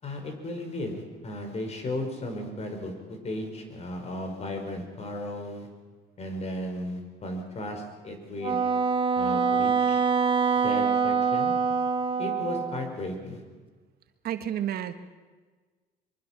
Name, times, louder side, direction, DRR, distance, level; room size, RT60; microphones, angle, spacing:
voice 1, 0.0-5.7 6.2-8.6 9.2-10.0 10.6-11.5 12.2-13.4, left 1 dB, 40° left, 4 dB, 5.3 m, -35 dB
Wind instrument woodwind instrument, 8.4-12.9, right 5 dB, 30° right, 1.6 m, -25 dB
voice 2, 14.2-14.9, right 10 dB, 65° right, 9 dB, 1.4 m, -30 dB
23.5 x 23.5 x 6.0 m, 1.4 s
cardioid pair, 110°, 17 cm